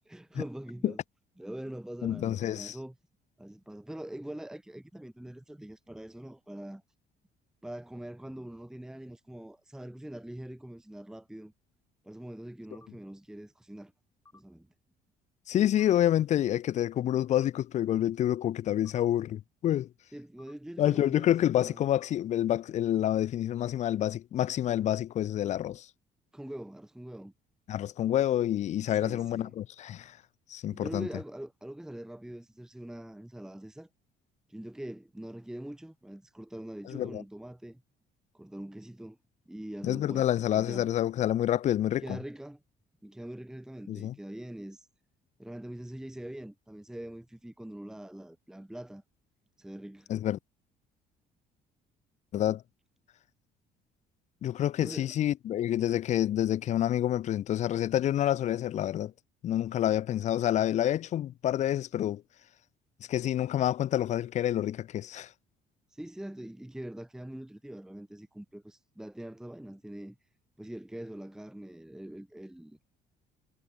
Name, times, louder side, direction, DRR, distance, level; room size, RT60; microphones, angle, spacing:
voice 1, 0.1-1.0 1.4-3.0 3.4-6.8 7.6-11.5 12.0-13.9 14.3-14.7 20.1-21.8 26.3-27.3 29.0-29.5 30.7-33.9 34.5-37.8 38.3-39.2 39.5-40.3 40.5-40.9 42.0-42.6 43.0-44.9 45.4-49.0 49.6-50.1 54.8-55.1 65.9-70.2 70.6-72.8, right 1 dB, 5° right, 1.0 m, -43 dB
voice 2, 2.0-2.8 15.5-19.9 20.8-25.9 27.7-30.1 30.5-31.1 36.9-37.2 39.8-42.2 43.9-44.1 50.1-50.4 52.3-52.6 54.4-59.1 59.4-62.2 63.1-65.3, left 11 dB, 45° left, 0.4 m, -28 dB
sound 1, 12.7-12.9 14.2-14.4 15.8-16.0 17.3-17.5 18.8-19.0 20.4-20.6 21.9-22.1, left 3 dB, 20° left, 4.8 m, -58 dB
cardioid pair, 110°, 17 cm